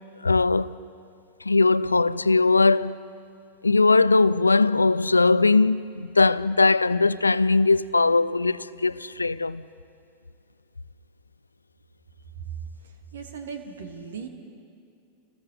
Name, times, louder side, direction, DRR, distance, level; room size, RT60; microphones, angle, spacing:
voice 1, 0.2-0.8 1.5-3.0 3.6-9.6, left 3 dB, 80° left, 0.4 m, -20 dB
voice 2, 13.1-14.3, right 6 dB, 65° right, 2.3 m, -37 dB
29.5 x 20.0 x 4.8 m
figure-of-eight pair, 90°, 0 cm